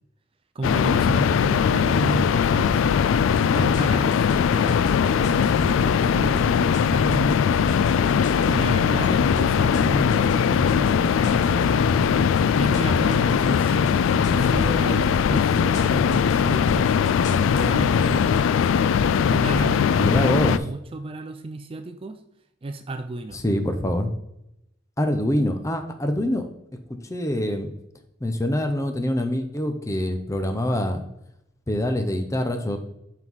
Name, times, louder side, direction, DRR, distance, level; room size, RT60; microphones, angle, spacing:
voice 1, 0.5-3.0 3.5-6.5 6.9-8.1 8.5-12.0 12.6-16.9 17.5-18.3 19.3-20.2 20.5-22.2 22.6-23.4, right 2 dB, 30° right, 8 dB, 0.4 m, -32 dB
sound 1, 0.6-20.6, left 7 dB, 85° left, 0.3 m, -20 dB
sound 2, 3.1-18.5, left 1 dB, 40° left, 1.6 m, -36 dB
voice 2, 20.0-20.6 23.4-24.1 25.0-26.5 27.1-27.7 28.2-31.0 31.7-32.8, left 1 dB, 15° left, 7 dB, 0.7 m, -25 dB
5.8 x 4.6 x 5.5 m, 0.82 s
head